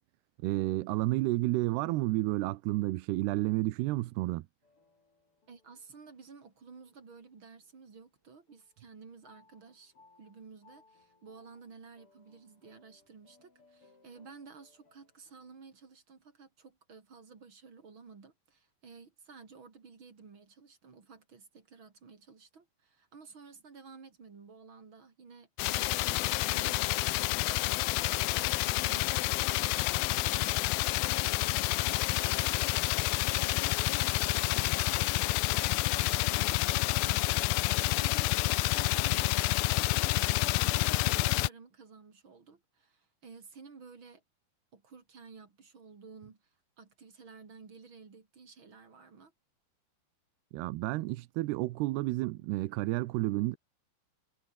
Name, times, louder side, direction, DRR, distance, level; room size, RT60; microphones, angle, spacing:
voice 1, 0.4-4.4 50.5-53.6, right 18 dB, 85° right, 2.9 m, -31 dB
sound 1, 4.6-8.1 8.5-15.8, left 3 dB, 35° left, 6.3 m, -66 dB
voice 2, 5.5-9.9 10.2-32.7 33.3-39.5 40.2-44.2 44.7-46.5 46.8-49.3, right 5 dB, 35° right, 3.0 m, -53 dB
sound 2, 25.6-41.5, left 20 dB, 80° left, 2.2 m, -29 dB
omnidirectional pair, 4.6 m